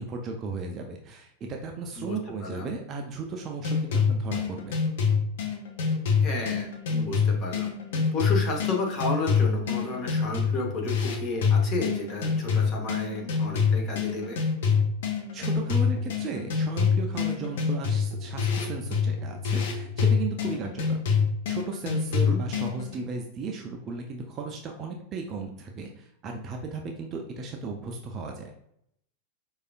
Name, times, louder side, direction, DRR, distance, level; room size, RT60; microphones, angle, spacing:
voice 1, 0.0-4.8 15.3-21.0 21.5-28.5, right 4 dB, 30° right, 2 dB, 0.4 m, -35 dB
voice 2, 2.0-2.7 6.2-7.7 8.1-14.4 22.1-22.4, left 2 dB, 30° left, 0 dB, 0.9 m, -32 dB
sound 1, 3.6-22.9, left 6 dB, 55° left, 0.6 m, -26 dB
4.8 x 2.3 x 2.3 m, 0.73 s
figure-of-eight pair, 90°, 0 cm